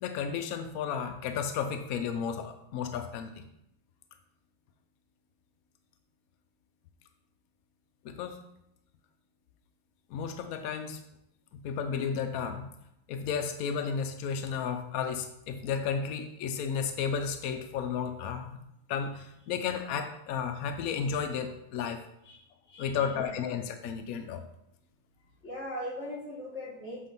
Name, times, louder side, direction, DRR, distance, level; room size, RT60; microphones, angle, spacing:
voice 1, 0.0-3.4 8.0-8.4 10.1-11.0 11.6-12.7 13.1-18.6 18.9-22.0 22.8-24.4, left 7 dB, 85° left, 7 dB, 0.7 m, -33 dB
voice 2, 22.7-23.4 25.4-27.1, left 1 dB, 35° left, -3 dB, 1.7 m, -40 dB
6.4 x 3.7 x 5.2 m, 0.81 s
omnidirectional pair, 2.1 m